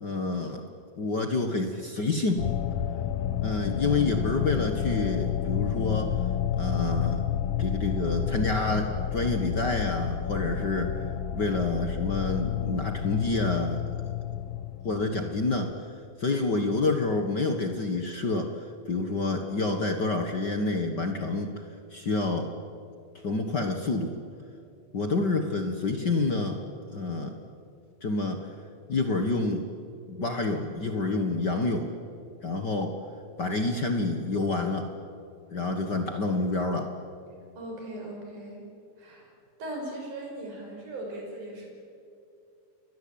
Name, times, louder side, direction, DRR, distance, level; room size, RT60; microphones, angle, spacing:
voice 1, 0.0-0.6 1.0-2.5 3.4-6.1 6.6-7.2 7.6-10.9 11.3-13.8 14.8-15.7 16.2-18.5 18.9-21.5 21.9-22.5 23.2-24.1 24.9-26.6 26.9-27.3 28.0-28.4 28.9-29.6 30.1-31.9 32.4-32.9 33.4-34.9 35.5-36.9, left 3 dB, 50° left, 5 dB, 1.3 m, -28 dB
sound 1, 2.4-15.7, left 10 dB, 90° left, 1.3 m, -30 dB
voice 2, 37.6-38.6 39.0-39.3 39.6-41.7, right 1 dB, 60° right, 0 dB, 7.5 m, -38 dB
29.5 x 22.0 x 8.8 m, 2.4 s
omnidirectional pair, 4.1 m